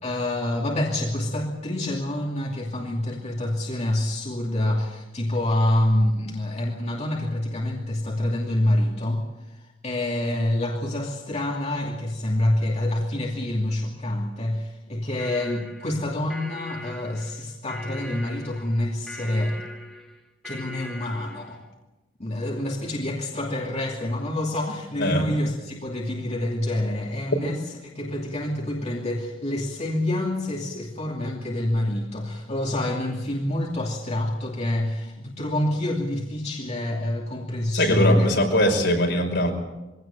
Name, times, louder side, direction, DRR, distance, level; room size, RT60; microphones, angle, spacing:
voice 1, 0.0-19.6 20.4-21.6 22.2-38.3, left 1 dB, 35° left, -2 dB, 2.7 m, -27 dB
sound 1, 15.2-21.6, left 1 dB, ahead, 3.2 m, -40 dB
voice 2, 25.0-25.3 37.7-39.5, left 1 dB, 60° left, 2 dB, 5.6 m, -21 dB
23.0 x 17.5 x 8.9 m, 1.0 s
head